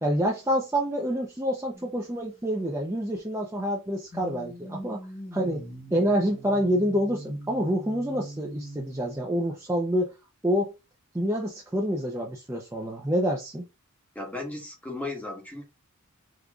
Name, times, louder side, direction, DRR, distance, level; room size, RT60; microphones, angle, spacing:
voice 1, 0.0-5.0 5.3-5.6 5.9-10.2 10.4-10.7 11.1-13.6, equal, 10° right, 0.7 m, -27 dB
sound 1, 1.7-2.5 4.1-9.2, right 1 dB, 25° left, 1.6 m, -43 dB
voice 2, 14.1-15.6, left 2 dB, 5° left, 1.3 m, -35 dB
5.2 x 3.1 x 2.4 m
head